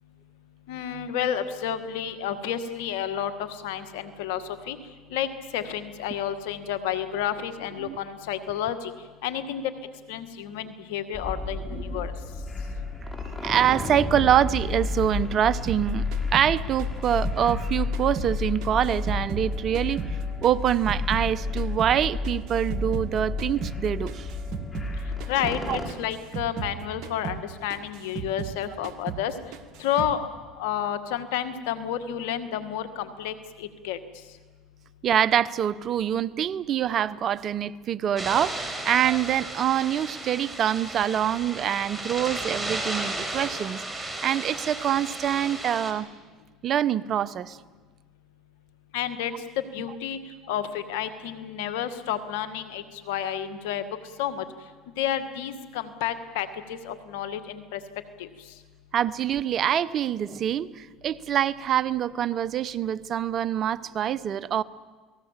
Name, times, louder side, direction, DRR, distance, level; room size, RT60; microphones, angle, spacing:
voice 1, 0.7-4.8 5.1-5.3 5.5-8.9 9.2-9.6 10.1-12.1 25.3-29.3 29.8-30.2 30.6-34.0 48.9-49.3 49.7-50.2 50.5-53.8 54.2-54.4 55.0-57.8 58.2-58.3, left 10 dB, 80° left, 1.8 m, -30 dB
sound 1, 11.1-25.9, left 3 dB, 20° left, 5.7 m, -31 dB
voice 2, 11.7-12.1 13.4-16.0 16.3-20.0 20.4-24.3 25.7-25.8 35.0-46.1 46.6-47.6 58.9-64.6, right 10 dB, 50° right, 0.9 m, -25 dB
sound 2, 15.7-18.4 18.6-21.3 21.6-24.9 25.2-25.6 25.9-28.6 28.8-29.3 29.5-30.2, right 7 dB, 65° right, 1.8 m, -36 dB
sound 3, 38.2-45.9, right 2 dB, 15° right, 5.1 m, -34 dB
29.0 x 19.0 x 7.5 m
supercardioid pair, 85°, 0 cm